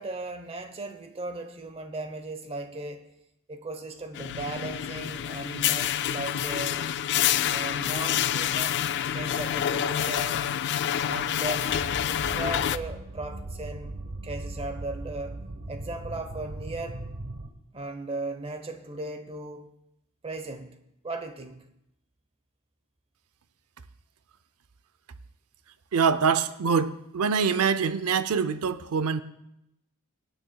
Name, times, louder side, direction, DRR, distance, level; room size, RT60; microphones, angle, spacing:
voice 1, 0.0-3.1 3.5-6.8 7.4-8.8 9.1-10.5 11.0-11.7 12.1-13.9 14.2-15.4 15.7-17.0 17.7-19.7 20.2-20.8 21.0-21.7, right 2 dB, 25° right, 8 dB, 0.8 m, -37 dB
sound 1, 4.1-12.8, left 10 dB, 55° left, 0.3 m, -27 dB
sound 2, 11.7-17.5, right 2 dB, 55° right, 1.2 m, -38 dB
voice 2, 25.9-29.2, right 6 dB, 80° right, 13 dB, 0.5 m, -24 dB
24.0 x 9.0 x 2.3 m, 0.82 s
head